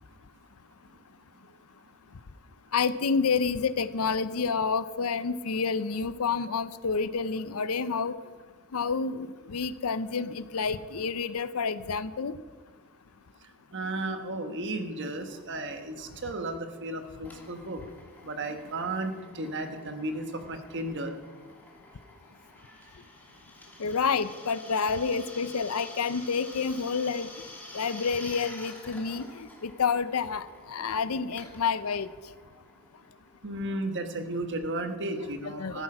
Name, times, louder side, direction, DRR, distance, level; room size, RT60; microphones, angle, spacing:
voice 1, 2.7-8.2 8.7-12.4 20.0-20.2 23.8-27.3 27.7-32.1 35.6-35.8, left 5 dB, 75° left, 14 dB, 0.6 m, -29 dB
voice 2, 13.7-17.8 18.2-21.2 33.4-35.8, right 2 dB, 55° right, 6 dB, 1.3 m, -34 dB
Drill, 17.2-33.6, left 1 dB, 10° left, 2.8 m, -49 dB
14.0 x 10.5 x 6.1 m, 1.5 s
head